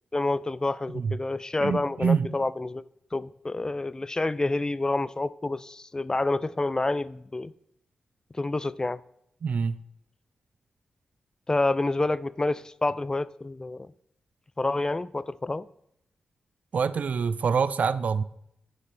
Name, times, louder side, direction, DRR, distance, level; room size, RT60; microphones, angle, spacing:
voice 1, 0.1-2.8 3.1-7.5 8.4-9.0 11.5-13.9 14.6-15.7, left 2 dB, 25° left, 0.4 m, -28 dB
voice 2, 1.6-2.3 9.4-9.8 16.7-18.2, right 6 dB, 65° right, 0.4 m, -25 dB
9.6 x 9.6 x 3.3 m
cardioid pair, 55°, 3 cm